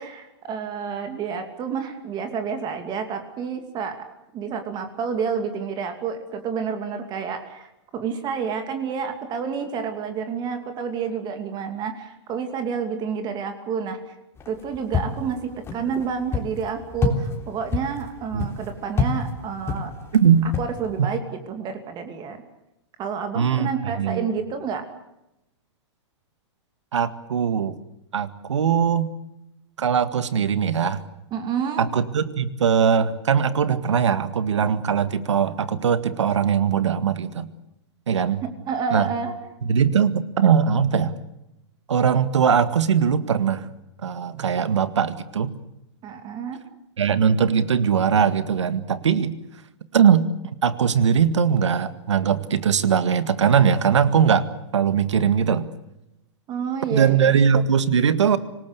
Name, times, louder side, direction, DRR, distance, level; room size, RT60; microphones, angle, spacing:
voice 1, 0.0-3.9 4.3-14.1 14.5-19.9 20.4-22.4 23.0-24.8 31.3-31.8 38.4-39.3 46.0-46.6 56.5-57.3, right 6 dB, 30° right, 7 dB, 2.6 m, -29 dB
sound 1, 14.4-21.1, left 4 dB, 15° left, 3.5 m, -29 dB
voice 2, 20.1-20.5 23.3-24.3 26.9-27.7 28.1-29.1 29.8-31.0 31.8-37.5 38.1-38.4 38.9-39.1 39.6-41.2 41.9-43.7 44.0-45.5 47.0-49.4 49.9-50.3 50.6-54.5 54.7-55.7 56.9-58.4, right 7 dB, 90° right, 13 dB, 1.9 m, -20 dB
26.0 x 19.0 x 8.2 m, 0.89 s
hypercardioid pair, 135°, 15 cm